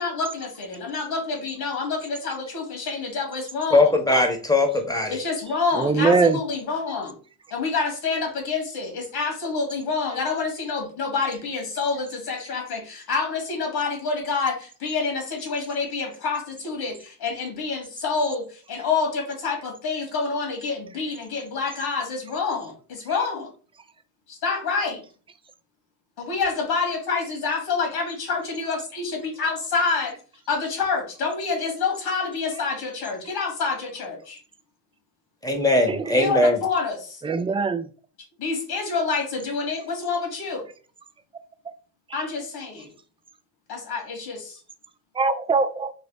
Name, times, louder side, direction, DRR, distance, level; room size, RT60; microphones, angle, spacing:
voice 1, 0.0-3.9 5.1-7.1 7.5-23.5 24.3-25.0 26.2-30.1 30.5-34.4 36.2-37.2 38.4-40.6 42.1-42.9 43.7-44.6, left 4 dB, 85° left, 1.7 m, -27 dB
voice 2, 3.7-5.2 35.4-36.6, left 2 dB, 10° left, 1.0 m, -20 dB
voice 3, 5.8-6.4 35.9-36.1 37.2-37.9 42.1-42.2 45.2-45.9, right 4 dB, 15° right, 0.3 m, -22 dB
3.4 x 2.4 x 3.7 m
cardioid pair, 95°, 38 cm